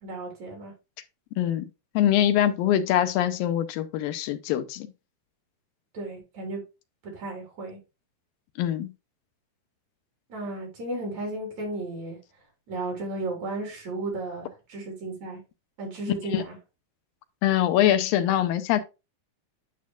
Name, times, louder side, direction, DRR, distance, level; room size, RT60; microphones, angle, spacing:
voice 1, 0.0-0.7 5.9-6.6 7.1-7.8 10.3-12.2 12.7-15.4 15.8-16.6, right 2 dB, 50° right, 4.6 m, -34 dB
voice 2, 2.0-4.9 8.6-8.9 16.3-16.4 17.4-18.8, left 11 dB, 90° left, 2.5 m, -23 dB
9.4 x 6.3 x 2.4 m
omnidirectional pair, 4.1 m